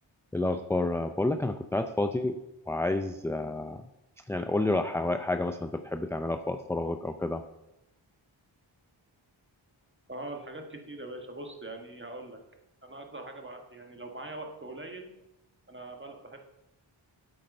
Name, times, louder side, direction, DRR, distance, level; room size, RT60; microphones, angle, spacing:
voice 1, 0.3-2.4 2.7-3.8 4.3-7.4, left 2 dB, 5° left, 8 dB, 0.4 m, -29 dB
voice 2, 10.1-12.4 12.8-15.1 15.7-16.4, right 2 dB, 25° right, 3 dB, 1.5 m, -42 dB
8.2 x 7.7 x 5.5 m, 0.89 s
wide cardioid pair, 70°, 49 cm